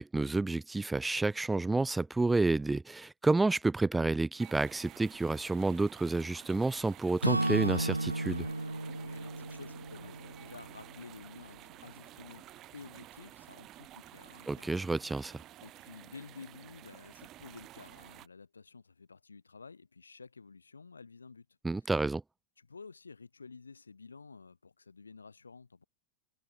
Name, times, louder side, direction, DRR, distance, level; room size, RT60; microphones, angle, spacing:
voice 1, 0.0-8.5 14.5-15.4 21.6-22.2, right 3 dB, 10° right, 0.4 m, -30 dB
sound 1, 4.4-18.3, right 14 dB, 35° right, 7.2 m, -52 dB
Acoustic guitar / Strum, 7.2-11.2, right 2 dB, 85° right, 0.3 m, -34 dB
voice 2, 9.0-12.4 12.7-14.8 15.6-21.5 21.8-21.9 22.6-25.8, left 4 dB, 75° left, 4.5 m, -51 dB
figure-of-eight pair, 90°, 0 cm